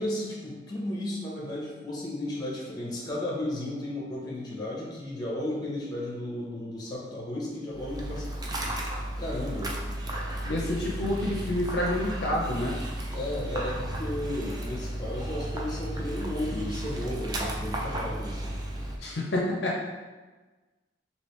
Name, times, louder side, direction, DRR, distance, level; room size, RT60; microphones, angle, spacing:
voice 1, 0.0-8.6 9.2-9.7 13.1-18.4, left 1 dB, 20° left, -4 dB, 0.8 m, -34 dB
Dog, 7.7-19.0, right 1 dB, 20° right, 0.3 m, -34 dB
voice 2, 10.4-12.8 19.0-19.8, left 1 dB, 60° left, -2 dB, 0.5 m, -28 dB
3.1 x 2.8 x 3.1 m, 1.3 s
head